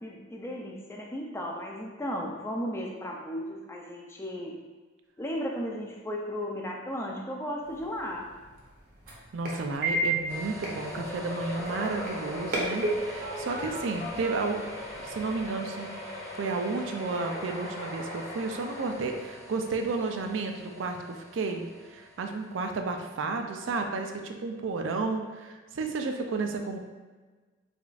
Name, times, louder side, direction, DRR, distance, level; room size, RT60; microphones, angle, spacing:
voice 1, 0.0-4.6 5.2-8.3, equal, 15° left, -1 dB, 0.4 m, -35 dB
sound 1, 7.6-15.5, right 2 dB, 45° right, 0.8 m, -35 dB
voice 2, 9.3-14.6 15.0-15.9 16.4-26.8, right 3 dB, 65° right, 4 dB, 0.4 m, -32 dB
sound 2, 10.3-22.9, left 1 dB, 80° left, 0.9 m, -47 dB
sound 3, 10.8-19.6, left 1 dB, 55° left, 1.4 m, -39 dB
4.9 x 2.5 x 2.4 m, 1.3 s
head